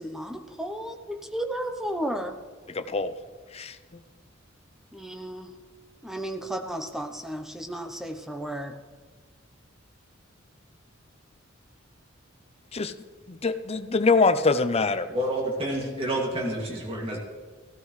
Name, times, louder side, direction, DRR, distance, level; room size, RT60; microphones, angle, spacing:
voice 1, 0.0-2.3 4.9-5.5 6.0-8.7, right 1 dB, ahead, 5 dB, 0.8 m, -33 dB
voice 2, 2.7-3.1 3.5-3.8 12.7-12.9 13.3-15.1, left 4 dB, 30° left, 10 dB, 0.6 m, -24 dB
voice 3, 15.1-17.2, right 1 dB, 30° right, -2 dB, 2.4 m, -29 dB
16.5 x 12.5 x 3.2 m, 1.5 s
head